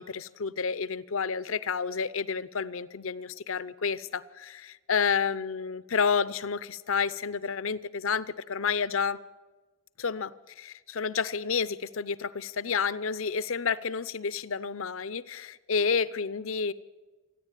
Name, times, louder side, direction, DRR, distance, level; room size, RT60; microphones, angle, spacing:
voice 1, 0.0-9.2 10.0-16.7, left 5 dB, 70° left, 0.7 m, -30 dB
27.5 x 10.5 x 9.1 m
head